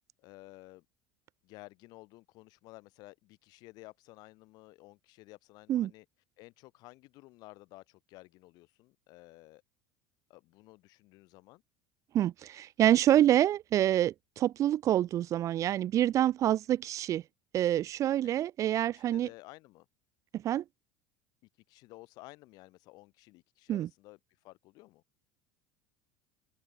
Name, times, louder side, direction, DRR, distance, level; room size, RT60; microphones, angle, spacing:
voice 1, 0.2-0.8 1.4-6.1 6.4-9.6 10.3-11.6 18.2-18.3 18.9-19.9 21.7-24.2 24.4-25.0, left 21 dB, 60° left, 8.0 m, -53 dB
voice 2, 12.1-17.2 17.5-19.3 20.4-20.6 23.7-23.9, right 12 dB, 45° right, 0.6 m, -27 dB
open air
hypercardioid pair, 90°, 8 cm